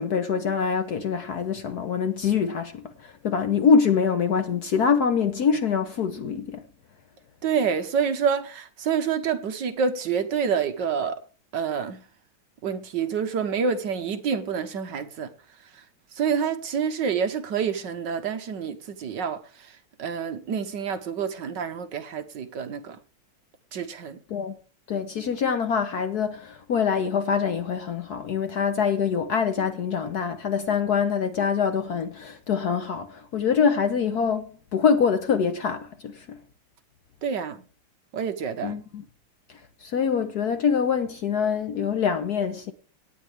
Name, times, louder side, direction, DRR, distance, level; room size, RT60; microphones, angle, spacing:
voice 1, 0.0-6.6 24.3-24.6 24.9-36.4 38.6-39.0 39.8-42.7, left 6 dB, 60° left, 1.2 m, -24 dB
voice 2, 7.4-11.2 11.5-12.0 12.6-15.3 15.6-15.9 16.1-23.0 23.7-24.2 37.2-37.6 38.1-38.8, right 6 dB, 60° right, 1.5 m, -28 dB
17.5 x 9.4 x 3.4 m
omnidirectional pair, 2.4 m